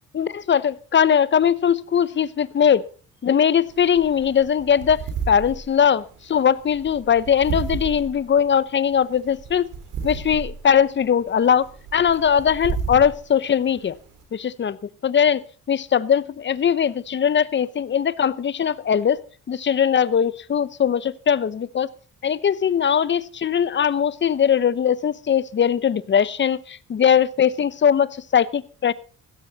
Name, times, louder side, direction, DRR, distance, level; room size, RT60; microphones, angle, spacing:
voice 1, 0.1-2.8 3.2-5.0 5.3-9.7 10.0-14.0 14.3-14.8 15.0-19.2 19.5-21.9 22.2-28.9, left 8 dB, 40° left, 18 dB, 0.9 m, -20 dB
sound 1, 3.7-14.2, right 5 dB, 80° right, 3.7 m, -33 dB
16.0 x 13.5 x 4.1 m, 0.39 s
cardioid pair, 90°, 30 cm